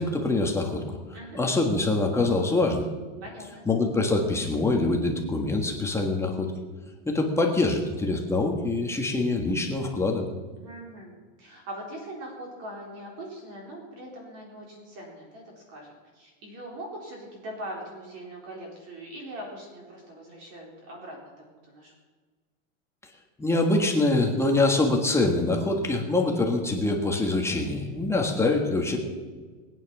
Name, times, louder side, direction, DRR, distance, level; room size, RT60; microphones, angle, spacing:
voice 1, 0.0-1.0 1.3-2.9 3.6-6.5 7.1-10.2 23.4-29.0, left 2 dB, 5° left, 1 dB, 1.5 m, -24 dB
voice 2, 3.2-3.6 10.6-21.9, right 1 dB, 40° right, -1 dB, 4.0 m, -41 dB
20.5 x 9.5 x 6.1 m, 1.4 s
supercardioid pair, 160°, 40 cm